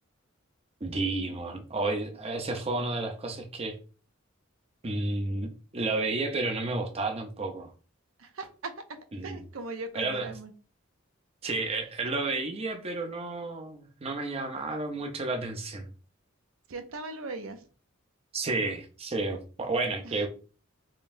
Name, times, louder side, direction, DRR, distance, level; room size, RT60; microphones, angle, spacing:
voice 1, 0.8-3.7 4.8-7.7 9.1-9.4 9.9-10.3 11.4-15.9 18.3-20.3, right 3 dB, 30° right, 4 dB, 0.6 m, -31 dB
voice 2, 8.2-10.5 16.7-17.7 20.0-20.3, right 3 dB, 85° right, 7 dB, 0.6 m, -39 dB
3.8 x 3.3 x 2.6 m, 0.36 s
head